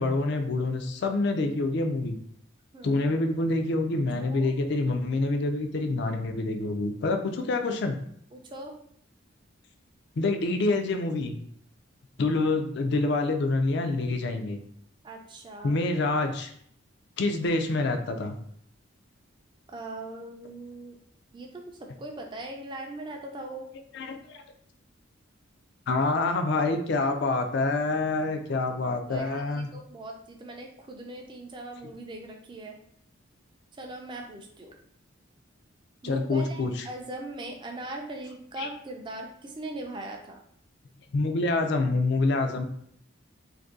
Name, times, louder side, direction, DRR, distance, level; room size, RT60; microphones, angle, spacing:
voice 1, 0.0-2.2 2.8-8.0 10.2-11.4 12.2-14.6 15.6-16.5 17.2-18.3 23.9-24.4 25.9-29.7 36.0-36.9 38.6-38.7 41.1-42.6, left 2 dB, 55° left, 6 dB, 0.4 m, -26 dB
voice 2, 4.2-4.5 8.3-8.7 15.0-15.8 19.7-21.0 21.3-23.7 29.1-32.8 33.7-34.8 36.0-40.4, right 2 dB, 25° right, 2 dB, 0.4 m, -40 dB
2.6 x 2.6 x 3.7 m, 0.66 s
head